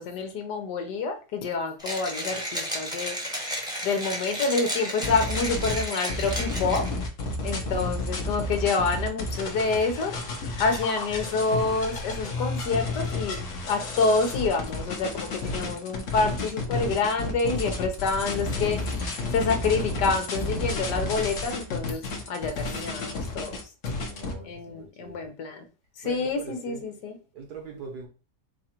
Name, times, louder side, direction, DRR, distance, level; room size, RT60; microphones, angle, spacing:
voice 1, 0.0-3.1 3.8-6.9 7.4-10.1 10.4-13.4 13.7-23.6 24.4-25.6 26.0-27.2, left 4 dB, 80° left, 1.5 m, -27 dB
Mechanisms, 1.8-7.1, equal, 5° right, 1.0 m, -33 dB
sound 1, 5.0-24.3, left 2 dB, 55° left, 1.2 m, -31 dB
voice 2, 7.3-7.8 15.5-15.8 24.1-25.2 26.0-26.8 27.3-28.1, right 4 dB, 70° right, 1.8 m, -42 dB
4.8 x 2.5 x 4.3 m
omnidirectional pair, 1.8 m